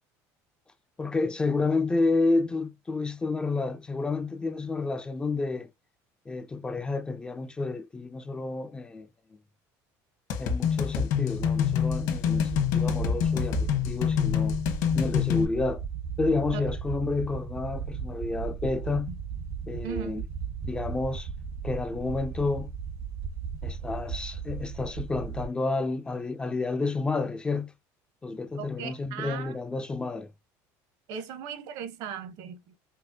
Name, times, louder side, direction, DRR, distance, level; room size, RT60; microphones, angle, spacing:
voice 1, 1.0-5.7 6.3-9.1 10.4-14.6 14.9-15.8 16.2-19.2 19.7-20.2 20.6-21.3 21.6-22.7 23.6-27.7 28.2-30.3, left 3 dB, 15° left, 0.3 m, -30 dB
sound 1, 10.3-15.5, left 8 dB, 65° left, 1.2 m, -26 dB
sound 2, 11.3-25.5, right 6 dB, 85° right, 1.3 m, -36 dB
voice 2, 19.8-20.3 28.6-29.6 31.1-32.7, right 8 dB, 70° right, 1.0 m, -38 dB
5.1 x 2.1 x 2.7 m
cardioid pair, 155°, 7 cm